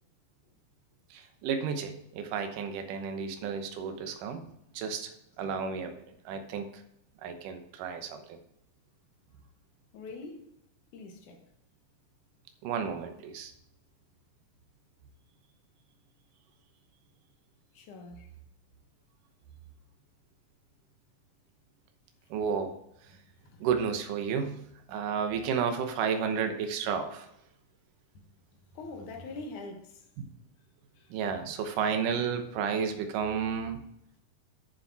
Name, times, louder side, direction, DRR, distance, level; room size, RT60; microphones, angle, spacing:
voice 1, 1.1-4.5 4.7-6.7 7.2-8.4 12.6-13.5 22.3-22.8 23.6-24.6 24.9-27.3 30.2-30.3 31.1-33.8, right 6 dB, 75° right, 2.5 m, -32 dB
voice 2, 9.9-10.5 10.9-11.5 17.7-18.3 23.1-23.7 24.9-25.0 28.1-28.2 28.7-30.1 31.0-31.1, left 3 dB, 65° left, 2.6 m, -44 dB
9.4 x 7.0 x 4.7 m
omnidirectional pair, 4.0 m